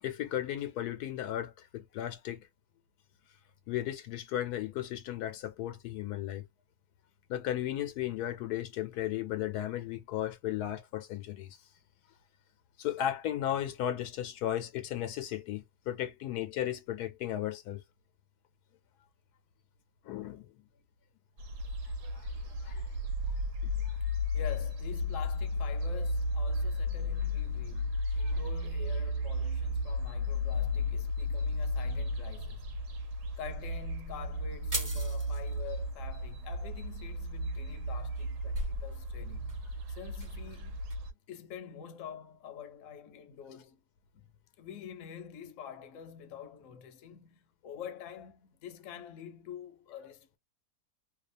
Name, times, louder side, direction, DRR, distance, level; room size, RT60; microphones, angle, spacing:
voice 1, 0.0-2.5 3.7-6.4 7.3-11.6 12.8-17.8 20.0-20.5 22.1-22.3 22.6-22.9 23.6-23.7 28.2-28.3, left 12 dB, 80° left, 1.1 m, -35 dB
sound 1, 21.4-41.1, left 1 dB, 85° right, 1.3 m, -34 dB
voice 2, 24.3-32.8 33.4-40.8 41.3-43.8 44.1-44.3 44.6-50.4, left 8 dB, 60° left, 1.0 m, -47 dB
sound 2, 30.3-41.0, right 1 dB, 15° right, 1.1 m, -47 dB
2.8 x 2.3 x 2.5 m
omnidirectional pair, 1.7 m